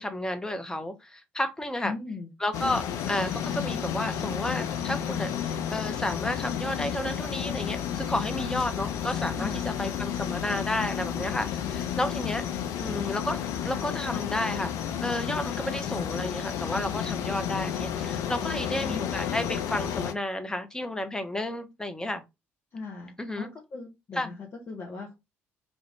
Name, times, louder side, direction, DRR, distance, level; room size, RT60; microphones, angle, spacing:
voice 1, 0.0-1.9 2.4-12.4 12.8-14.7 15.0-22.2 23.2-23.5 24.1-24.3, left 1 dB, 10° left, 0.7 m, -32 dB
voice 2, 1.8-2.3 9.3-9.7 18.4-19.0 22.7-25.1, left 4 dB, 40° left, 0.8 m, -38 dB
sound 1, 2.5-20.1, left 9 dB, 60° left, 0.4 m, -32 dB
2.6 x 2.4 x 3.2 m
figure-of-eight pair, 45°, 7 cm